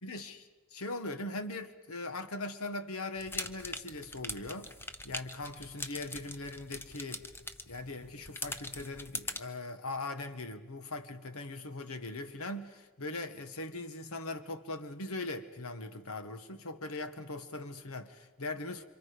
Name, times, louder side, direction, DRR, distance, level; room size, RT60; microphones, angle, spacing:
voice 1, 0.0-4.7 5.0-7.3 7.7-18.8, left 2 dB, 90° left, 9 dB, 1.5 m, -40 dB
sound 1, 3.2-9.4, left 2 dB, 10° left, 0.7 m, -42 dB
27.5 x 26.0 x 5.2 m, 1.2 s
head